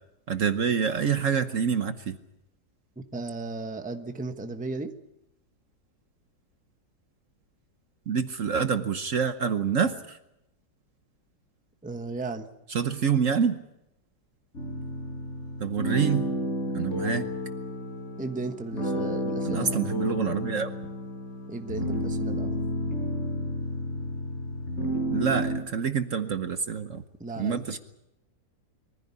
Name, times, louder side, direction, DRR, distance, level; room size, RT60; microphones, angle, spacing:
voice 1, 0.3-2.2 8.1-10.2 12.7-13.6 15.6-16.3 16.7-17.3 19.4-20.7 25.1-27.0 27.4-27.8, right 6 dB, 55° right, 9 dB, 1.2 m, -26 dB
voice 2, 3.1-4.9 11.8-12.5 18.2-19.9 21.5-22.6 27.2-27.8, right 3 dB, 5° right, 7 dB, 1.0 m, -35 dB
sound 1, 14.5-25.6, equal, 45° left, 4.8 m, -31 dB
23.5 x 15.0 x 9.8 m, 0.87 s
omnidirectional pair, 1.8 m